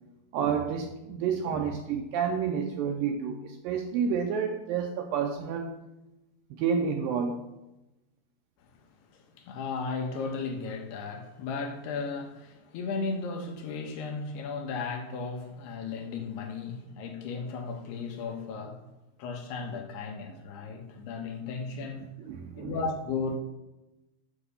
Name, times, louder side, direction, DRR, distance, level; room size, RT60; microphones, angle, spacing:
voice 1, 0.3-5.7 6.5-7.4 22.3-22.7, right 6 dB, 80° right, 2.1 m, -29 dB
voice 2, 9.1-18.8 19.2-22.1 22.6-23.4, left 4 dB, 80° left, 3.2 m, -35 dB
8.0 x 6.9 x 6.9 m
omnidirectional pair, 4.7 m